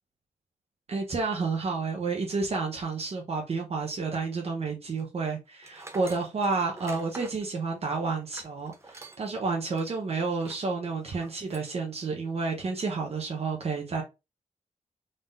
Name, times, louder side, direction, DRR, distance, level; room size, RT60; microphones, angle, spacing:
voice 1, 0.9-14.0, right 4 dB, 50° right, 0.9 m, -30 dB
Tools, 5.6-9.4 9.7-9.9 10.3-10.7 11.1-11.7, right 3 dB, 20° right, 0.7 m, -46 dB
3.9 x 3.7 x 2.6 m
wide cardioid pair, 115°, 13 cm